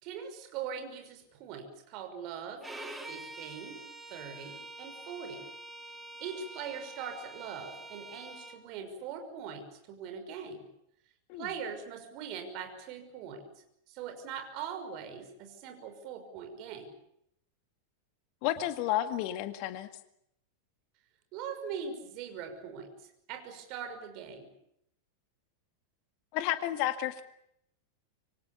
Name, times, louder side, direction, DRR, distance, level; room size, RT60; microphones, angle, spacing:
voice 1, 0.0-2.7 3.0-3.8 4.1-5.4 6.2-10.7 11.4-13.4 13.9-16.9 21.3-22.9 23.3-24.5, right 7 dB, 40° right, 7 dB, 5.8 m, -41 dB
Bowed string instrument, 2.6-8.6, right 2 dB, 5° right, 3.2 m, -46 dB
voice 2, 18.4-19.9 26.3-27.2, left 13 dB, 45° left, 10 dB, 1.9 m, -31 dB
26.5 x 24.0 x 7.0 m, 0.75 s
figure-of-eight pair, 90°, 0 cm